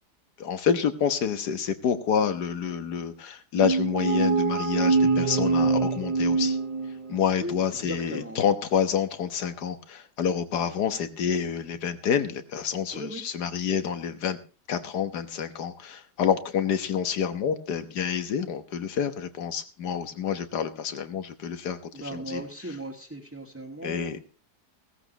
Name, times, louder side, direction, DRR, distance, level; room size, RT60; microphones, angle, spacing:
voice 1, 0.4-6.6 7.1-14.4 14.7-21.8 22.1-22.4 23.8-24.2, left 7 dB, 80° left, 10 dB, 1.8 m, -28 dB
sound 1, 3.6-7.3, right 4 dB, 30° right, 0.6 m, -24 dB
voice 2, 7.4-8.5 12.9-13.2 13.7-13.8 21.9-24.2, right 1 dB, 10° right, -1 dB, 1.6 m, -38 dB
16.5 x 14.5 x 2.9 m, 0.34 s
omnidirectional pair, 1.7 m